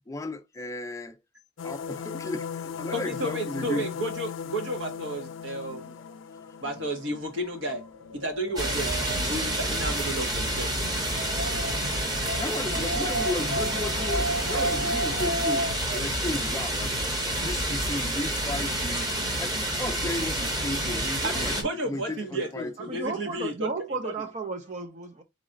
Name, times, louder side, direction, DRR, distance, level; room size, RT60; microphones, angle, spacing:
voice 1, 0.1-1.2 1.6-3.9 6.0-6.1 6.3-6.6 10.9-11.0 12.1-17.0 17.4-19.1 19.4-21.6 21.8-22.7, left 2 dB, 15° left, 0.4 m, -35 dB
sound 1, 1.6-8.6, left 7 dB, 80° left, 0.4 m, -38 dB
voice 2, 2.9-6.0 6.6-7.8 8.1-10.7 21.2-23.5 24.0-24.1, right 1 dB, 80° right, 1.5 m, -32 dB
Wind, 8.1-16.0, right 1 dB, 60° right, 1.7 m, -33 dB
sound 2, 8.6-21.6, right 1 dB, 20° right, 1.0 m, -29 dB
voice 3, 22.8-25.2, right 4 dB, 35° right, 0.5 m, -34 dB
4.1 x 3.1 x 3.6 m
head